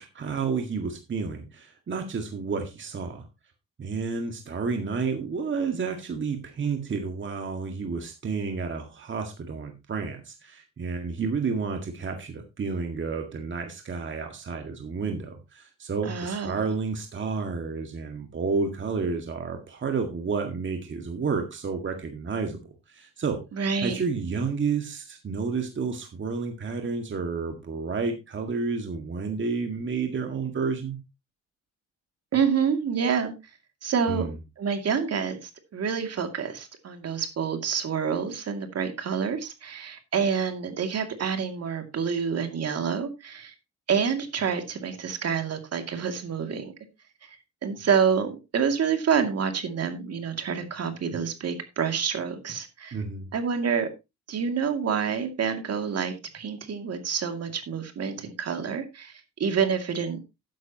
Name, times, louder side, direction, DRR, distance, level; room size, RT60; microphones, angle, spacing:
voice 1, 0.0-3.3 3.8-23.4 23.8-31.0 34.1-34.3 52.9-53.3, right 5 dB, 40° right, 4 dB, 1.9 m, -30 dB
voice 2, 16.1-16.6 23.5-24.0 32.3-33.3 33.8-34.3 34.6-43.5 43.9-46.7 47.2-47.4 47.6-53.0 53.3-53.9 54.3-60.2, right 6 dB, 55° right, 6 dB, 2.4 m, -28 dB
12.0 x 9.7 x 2.9 m, 0.24 s
cardioid pair, 90°, 30 cm